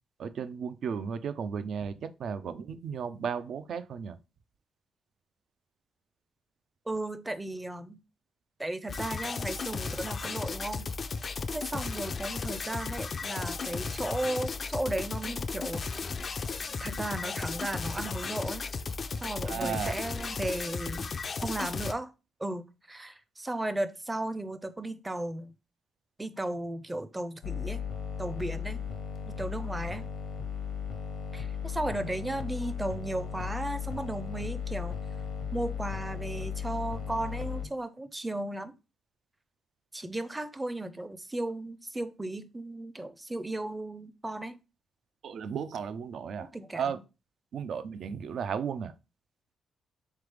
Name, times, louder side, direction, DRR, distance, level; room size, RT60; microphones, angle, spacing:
voice 1, 0.2-4.2 19.4-19.9 45.2-47.0 47.5-48.9, right 7 dB, 65° right, 0.4 m, -35 dB
voice 2, 6.9-8.0 8.6-10.9 11.5-16.0 16.8-18.7 19.2-21.1 21.4-22.1 22.4-25.5 26.2-27.8 28.2-28.8 29.3-30.1 31.3-35.0 35.5-38.7 39.9-44.5 46.4-46.9, right 1 dB, 15° right, 0.5 m, -35 dB
sound 1, 8.9-21.9, left 4 dB, 45° left, 0.4 m, -35 dB
sound 2, 27.4-37.7, left 7 dB, 75° left, 0.8 m, -36 dB
3.8 x 3.3 x 3.3 m
cardioid pair, 80°, 0 cm